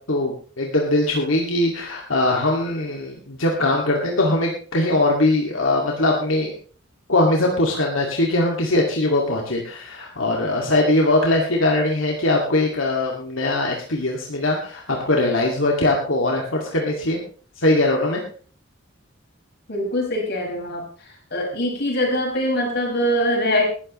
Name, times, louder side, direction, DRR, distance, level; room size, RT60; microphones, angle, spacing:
voice 1, 0.1-6.5 7.1-17.2 17.6-18.2, left 2 dB, 85° left, -1 dB, 2.3 m, -21 dB
voice 2, 19.7-23.7, equal, 55° left, 0 dB, 5.8 m, -23 dB
19.5 x 13.0 x 3.1 m, 0.42 s
head